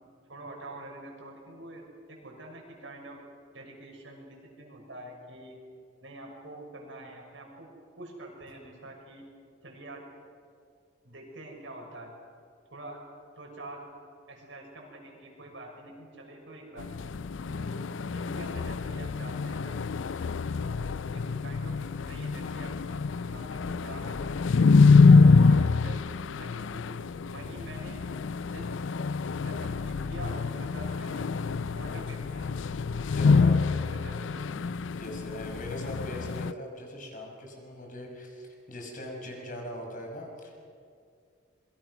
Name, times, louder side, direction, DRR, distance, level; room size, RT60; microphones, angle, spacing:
voice 1, 0.3-3.2 3.5-5.6 6.0-7.7 8.0-9.2 9.6-10.0 11.0-12.1 12.7-13.0 13.4-14.0 14.3-16.9 17.5-19.8 20.5-21.7 22.0-24.7 25.1-26.8 27.3-28.0 28.5-28.7 29.3-31.3 31.6-32.5 33.9-34.2 34.4-34.6, right 1 dB, 80° right, -1 dB, 6.6 m, -46 dB
sound 1, 16.8-36.5, left 4 dB, 80° left, 0.5 m, -25 dB
voice 2, 33.1-34.2 34.5-34.7 35.0-40.5, left 1 dB, 45° left, 1 dB, 5.7 m, -41 dB
26.5 x 23.5 x 6.3 m, 2.3 s
head